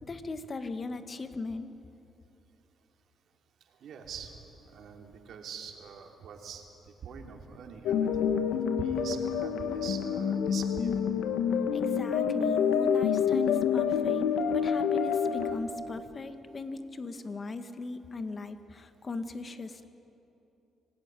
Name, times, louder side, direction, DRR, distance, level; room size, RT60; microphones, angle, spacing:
voice 1, 0.0-1.7 11.7-19.9, left 3 dB, 35° left, 9 dB, 1.6 m, -38 dB
voice 2, 3.7-10.9, right 6 dB, 70° right, 2 dB, 3.1 m, -44 dB
sound 1, 7.9-15.6, left 7 dB, 90° left, 1.4 m, -27 dB
25.5 x 18.5 x 9.0 m, 2.9 s
cardioid pair, 90°, 0 cm